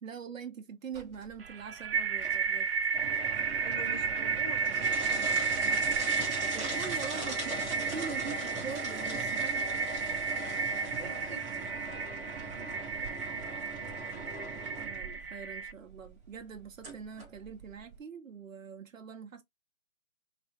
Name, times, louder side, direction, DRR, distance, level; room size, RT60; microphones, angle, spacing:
voice 1, 0.0-2.7 5.1-5.3 5.6-5.8 6.5-9.6 10.1-10.3 14.8-19.4, right 6 dB, 80° right, 0.9 m, -43 dB
sound 1, 0.9-18.0, right 3 dB, 5° right, 0.6 m, -40 dB
sound 2, 1.4-15.7, right 5 dB, 50° right, 0.4 m, -33 dB
voice 2, 3.3-5.4 7.2-7.4 11.0-11.5, right 3 dB, 35° right, 0.9 m, -47 dB
3.4 x 3.0 x 2.8 m
hypercardioid pair, 150°, 39 cm